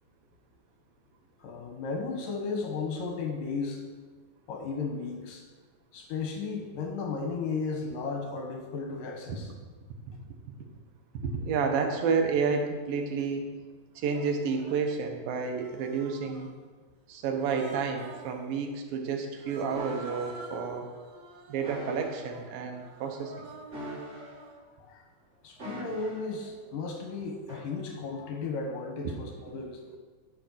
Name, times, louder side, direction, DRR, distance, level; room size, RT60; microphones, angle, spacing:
voice 1, 1.4-3.8 4.5-5.4 5.9-9.5 24.8-25.1 25.4-30.0, left 4 dB, 75° left, 2 dB, 2.7 m, -35 dB
voice 2, 11.1-13.5 14.0-16.5 17.1-20.9 21.5-23.5 29.0-29.1, right 5 dB, 90° right, 4 dB, 2.9 m, -30 dB
Human voice, 12.9-13.0 14.0-14.9 15.5-16.6 17.3-18.4 19.3-24.6, right 3 dB, 65° right, 2.1 m, -48 dB
sound 1, 19.7-20.4 21.6-22.3 23.7-24.6 25.6-26.3 27.5-27.7, right 1 dB, 25° right, 2.4 m, -42 dB
13.0 x 5.3 x 6.2 m, 1.4 s
omnidirectional pair, 3.9 m